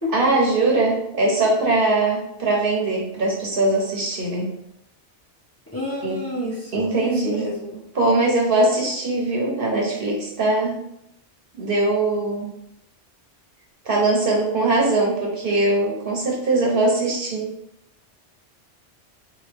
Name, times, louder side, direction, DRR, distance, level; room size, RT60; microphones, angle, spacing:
voice 1, 0.1-4.5 6.0-6.2 6.7-7.5 7.9-10.8 11.5-12.5 13.8-17.5, right 2 dB, 55° right, -2 dB, 0.9 m, -21 dB
voice 2, 5.7-7.8, left 1 dB, 15° left, -6 dB, 0.5 m, -29 dB
3.0 x 2.4 x 3.2 m, 0.78 s
omnidirectional pair, 1.2 m